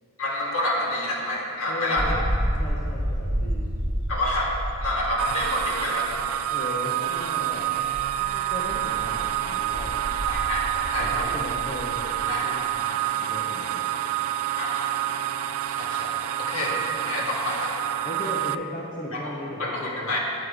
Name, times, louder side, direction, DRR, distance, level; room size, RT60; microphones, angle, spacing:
voice 1, 0.2-2.2 4.1-4.5 4.8-6.1 10.3-11.3 12.3-12.5 14.6-14.9 15.7-16.1 16.4-16.7 17.0-17.7 19.1-19.2 19.6-20.2, left 1 dB, 70° left, -4 dB, 1.8 m, -28 dB
voice 2, 1.7-2.2 2.6-3.7 6.5-7.7 8.2-10.0 11.0-13.8 18.0-20.2, left 1 dB, 35° left, -4 dB, 0.8 m, -36 dB
sound 1, 2.0-6.3 7.2-7.3 7.9-12.2, equal, 35° right, 1.1 m, -30 dB
sound 2, 5.2-18.5, right 11 dB, 80° right, 0.3 m, -28 dB
9.2 x 6.5 x 4.8 m, 2.6 s
head